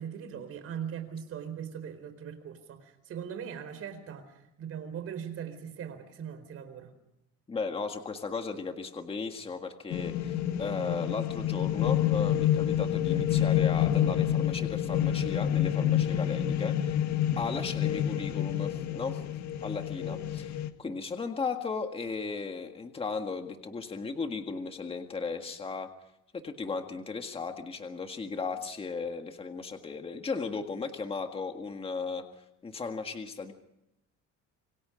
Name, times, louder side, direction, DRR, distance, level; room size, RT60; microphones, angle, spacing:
voice 1, 0.0-6.9 16.6-16.7 20.0-20.4, right 8 dB, 50° right, 9 dB, 4.3 m, -40 dB
voice 2, 7.5-16.7 17.4-19.2 19.6-20.4 20.8-25.9 26.3-32.2 32.6-33.5, left 4 dB, 20° left, 5 dB, 1.8 m, -36 dB
sound 1, 9.9-20.7, left 11 dB, 65° left, 1.8 m, -28 dB
27.0 x 24.0 x 5.1 m, 0.85 s
cardioid pair, 165°, 31 cm